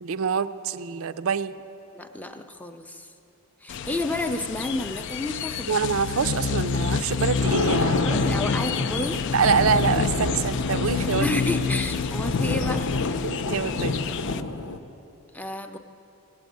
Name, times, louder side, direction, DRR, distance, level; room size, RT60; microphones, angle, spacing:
voice 1, 0.0-1.5 5.7-8.1 9.3-11.3 13.2-13.9, right 6 dB, 65° right, 13 dB, 0.4 m, -25 dB
voice 2, 1.9-3.1 3.6-5.8 8.0-9.2 11.2-13.0 15.3-15.8, left 2 dB, 5° left, 6 dB, 0.6 m, -30 dB
sound 1, 3.7-14.4, left 6 dB, 55° left, 0.4 m, -29 dB
Thunder, 7.0-14.8, left 3 dB, 85° left, 0.8 m, -28 dB
17.0 x 8.3 x 9.2 m, 2.8 s
head